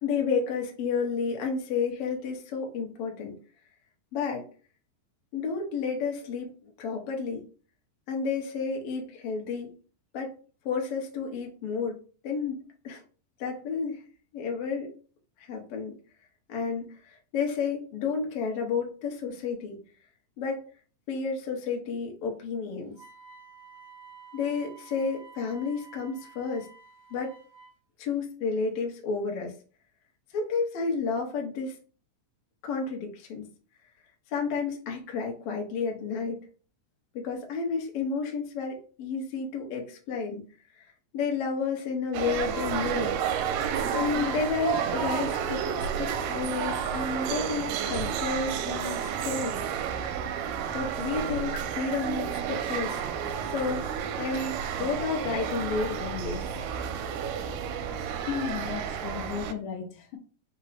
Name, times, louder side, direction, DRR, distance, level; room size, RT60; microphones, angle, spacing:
voice 1, 0.0-3.3 4.1-4.5 5.3-7.4 8.1-9.7 10.1-10.3 10.6-12.0 12.2-13.0 13.4-14.0 14.3-14.9 15.4-15.9 16.5-19.8 20.4-20.6 21.1-22.9 24.3-26.7 27.1-27.3 28.0-29.5 30.3-31.8 32.6-33.4 34.3-36.4 37.1-40.4 40.8-40.9 41.1-43.1 43.9-49.6 50.7-53.0 53.5-53.9 54.2-56.5, left 5 dB, 65° left, 1.6 m, -31 dB
Wind instrument woodwind instrument, 22.9-27.8, right 5 dB, 50° right, 1.7 m, -51 dB
sound 1, 42.1-59.5, right 8 dB, 80° right, 2.1 m, -31 dB
voice 2, 58.3-60.2, left 7 dB, 80° left, 2.2 m, -34 dB
5.2 x 2.2 x 4.1 m
omnidirectional pair, 3.8 m